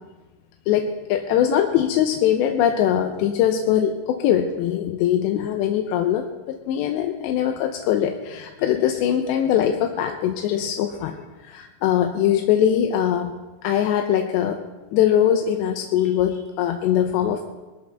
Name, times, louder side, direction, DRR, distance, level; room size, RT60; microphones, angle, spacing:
voice 1, 0.7-11.2 11.5-13.3 13.6-14.6 14.9-17.5, left 10 dB, 80° left, 4 dB, 2.7 m, -21 dB
21.5 x 13.5 x 3.5 m, 1.2 s
omnidirectional pair, 5.6 m